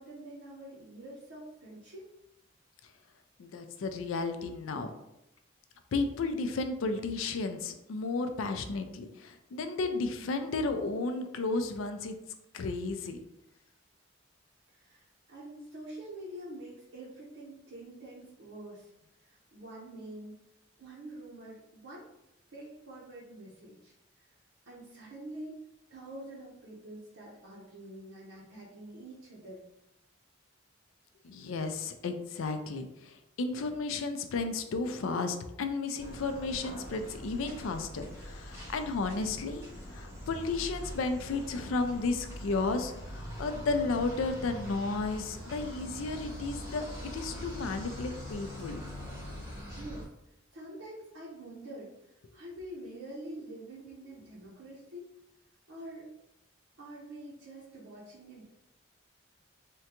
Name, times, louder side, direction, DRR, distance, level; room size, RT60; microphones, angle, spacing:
voice 1, 0.0-2.0 14.7-18.9 19.2-20.4 20.8-22.1 22.5-23.9 24.7-25.6 25.9-29.6 49.7-50.1 50.5-51.9 52.3-55.1 55.7-56.1 56.8-58.4, right 1 dB, 75° right, -6 dB, 0.7 m, -46 dB
voice 2, 3.4-4.9 5.9-12.1 12.5-13.2 31.2-39.6 39.9-48.8, left 3 dB, 75° left, 8 dB, 0.4 m, -33 dB
sound 1, 36.0-50.0, equal, 15° right, 0.7 m, -43 dB
3.6 x 2.2 x 2.9 m, 0.84 s
head